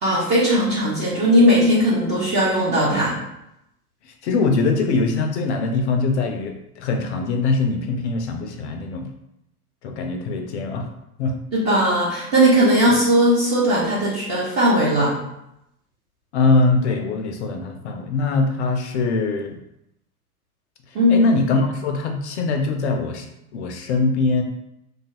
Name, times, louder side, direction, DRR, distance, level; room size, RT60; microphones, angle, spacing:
voice 1, 0.0-3.2 11.5-15.1 20.9-21.3, equal, 15° right, -7 dB, 0.4 m, -18 dB
voice 2, 4.0-9.1 9.8-10.9 11.2-11.4 12.9-13.0 16.3-19.6 21.1-23.3 23.5-24.4, left 3 dB, 50° left, 5 dB, 0.5 m, -22 dB
2.7 x 2.4 x 2.8 m, 0.81 s
figure-of-eight pair, 100°, 46 cm